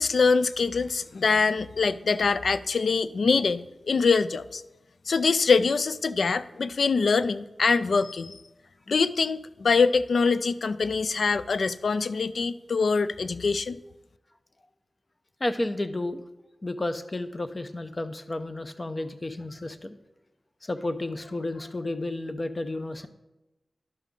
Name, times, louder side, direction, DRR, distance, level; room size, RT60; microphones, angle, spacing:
voice 1, 0.0-4.6 5.1-8.4 8.9-13.8, left 4 dB, 85° left, 14 dB, 0.3 m, -24 dB
voice 2, 15.4-16.2 16.6-20.0 20.6-23.1, left 2 dB, 35° left, 9 dB, 0.7 m, -32 dB
11.5 x 5.4 x 3.7 m, 1.0 s
wide cardioid pair, 60°, 0 cm